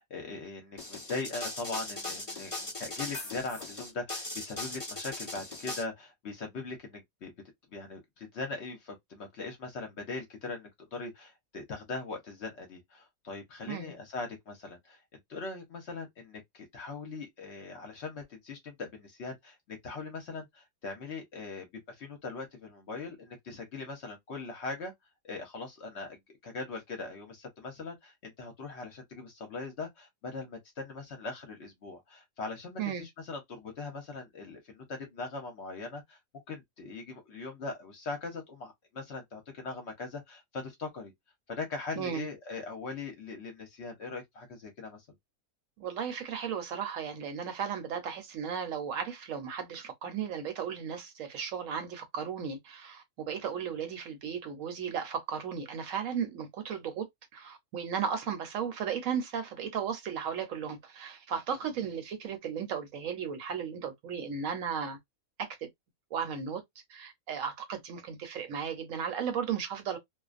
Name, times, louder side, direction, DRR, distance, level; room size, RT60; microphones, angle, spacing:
voice 1, 0.0-7.3 7.7-15.0 15.3-24.9 25.2-36.2 36.5-41.1 41.5-45.0, left 3 dB, 55° left, 0.9 m, -40 dB
sound 1, 0.8-5.8, left 2 dB, 25° left, 1.0 m, -39 dB
voice 2, 42.0-42.3 45.8-57.1 57.3-65.0 65.4-65.7 66.1-66.6 66.9-70.0, right 7 dB, 70° right, 1.0 m, -35 dB
2.4 x 2.1 x 2.4 m
omnidirectional pair, 1.5 m